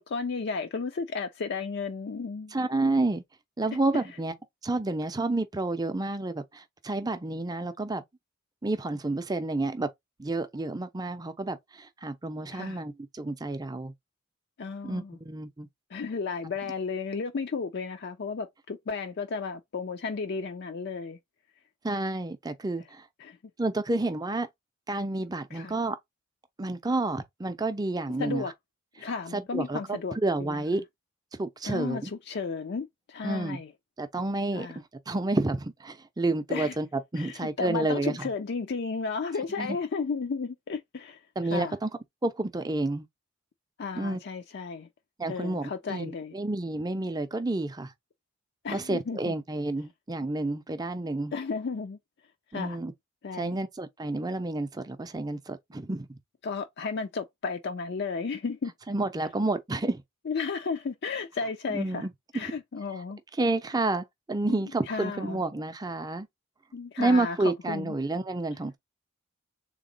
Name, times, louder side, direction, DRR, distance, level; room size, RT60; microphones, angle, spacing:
voice 1, 0.0-2.6 12.5-12.8 14.6-15.2 15.9-21.2 23.2-23.4 25.5-25.7 28.2-28.5 29.0-30.6 31.6-33.7 34.5-34.8 36.5-36.8 37.2-41.2 41.5-41.8 43.8-44.9 45.3-46.3 48.6-49.3 51.3-52.0 52.5-52.8 53.2-53.6 56.4-58.7 60.3-62.1 62.3-63.2 64.5-64.6 64.9-65.4 66.7-68.0, left 4 dB, 50° left, 0.4 m, -33 dB
voice 2, 2.5-3.2 3.6-4.3 4.6-8.0 8.6-9.9 10.2-13.9 14.8-15.7 21.8-23.0 23.6-24.5 24.9-26.0 26.6-28.4 29.0-29.1 29.3-30.8 31.3-32.1 33.2-33.6 34.0-34.7 35.1-36.9 37.1-38.2 39.6-39.8 41.4-41.9 42.2-43.1 44.0-44.2 45.2-47.9 48.7-51.3 52.5-52.9 53.3-56.2 58.9-60.0 61.7-62.5 63.4-66.3 67.0-68.8, right 2 dB, 20° right, 0.5 m, -30 dB
3.6 x 2.9 x 3.9 m
head